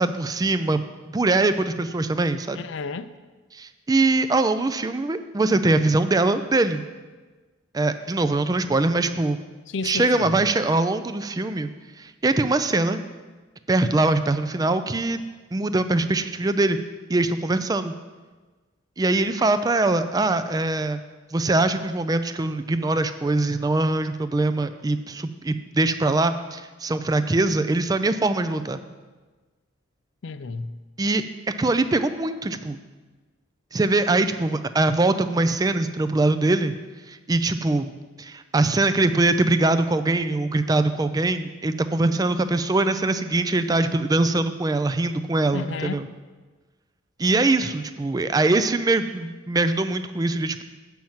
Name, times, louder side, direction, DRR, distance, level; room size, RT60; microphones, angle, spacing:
voice 1, 0.0-2.6 3.5-6.8 7.7-9.4 9.8-11.7 12.0-13.0 13.7-15.2 15.5-16.8 17.1-17.9 19.0-21.0 21.3-28.8 31.0-31.2 31.6-32.8 33.7-36.7 37.1-37.9 38.2-46.1 47.2-50.6, right 2 dB, 20° right, 0.4 m, -22 dB
voice 2, 2.5-3.1 9.7-10.4 30.2-30.8 45.5-46.1, left 4 dB, 65° left, 0.4 m, -32 dB
7.6 x 5.7 x 7.2 m
head